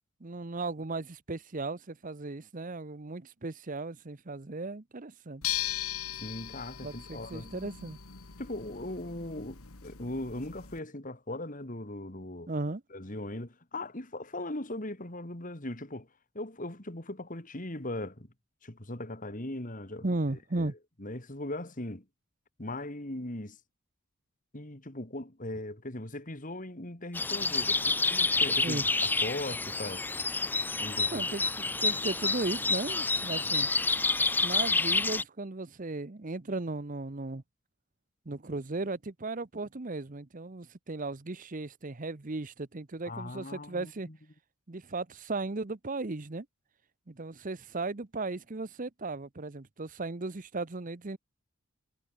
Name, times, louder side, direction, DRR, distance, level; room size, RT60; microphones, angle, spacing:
voice 1, 0.2-5.4 6.8-8.0 12.5-12.8 20.0-20.7 28.6-28.8 31.1-33.7 34.4-37.4 38.3-44.1 44.7-46.5 47.1-51.2, right 2 dB, 40° right, 0.8 m, -36 dB
sound 1, 5.4-10.8, left 12 dB, 80° left, 1.9 m, -39 dB
voice 2, 6.1-7.5 8.4-12.5 12.9-16.1 16.3-18.3 18.6-20.7 21.0-22.0 22.6-23.6 24.5-30.1 30.8-31.3 43.0-44.2, left 1 dB, 35° left, 2.4 m, -39 dB
sound 2, 27.1-35.2, left 3 dB, 10° left, 0.4 m, -28 dB
head